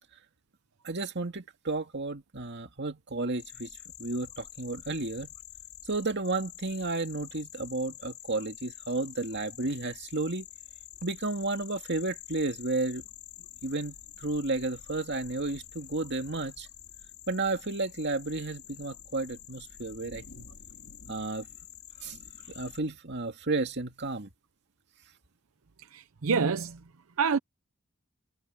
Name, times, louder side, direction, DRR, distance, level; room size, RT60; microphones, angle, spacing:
voice 1, 0.8-3.7 4.0-5.3 5.9-10.5 11.0-13.0 13.6-16.7 17.3-20.5 21.1-21.5 22.0-22.2 22.5-24.3, right 3 dB, 55° right, 2.3 m, -32 dB
sound 1, 3.4-22.8, left 11 dB, 80° left, 2.1 m, -48 dB
voice 2, 25.9-26.8 27.2-27.4, right 5 dB, 90° right, 0.7 m, -27 dB
head